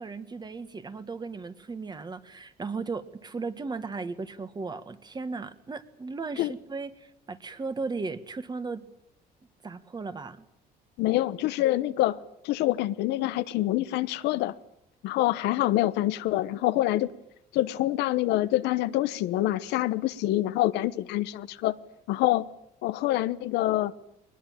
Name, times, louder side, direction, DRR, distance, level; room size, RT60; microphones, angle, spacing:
voice 1, 0.0-8.9 9.6-10.5, right 4 dB, 25° right, 1.7 m, -36 dB
voice 2, 11.0-12.2 12.4-14.6 15.0-17.1 17.5-21.7 22.1-22.5 22.8-23.9, left 15 dB, 85° left, 1.0 m, -26 dB
21.5 x 20.5 x 9.1 m
cardioid pair, 110°, 17 cm